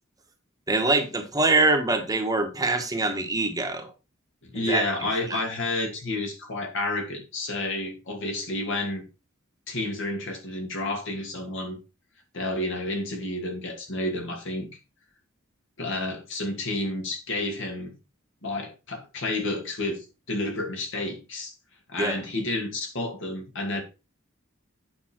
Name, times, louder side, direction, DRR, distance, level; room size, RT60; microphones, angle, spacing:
voice 1, 0.7-3.9 4.7-4.9 5.3-5.4 22.0-22.1, right 2 dB, 20° right, 1.3 m, -24 dB
voice 2, 4.4-9.0 9.7-11.8 12.3-14.7 15.8-17.9 18.4-21.5 21.9-23.8, left 2 dB, 65° left, 2.5 m, -30 dB
8.7 x 5.5 x 4.5 m
head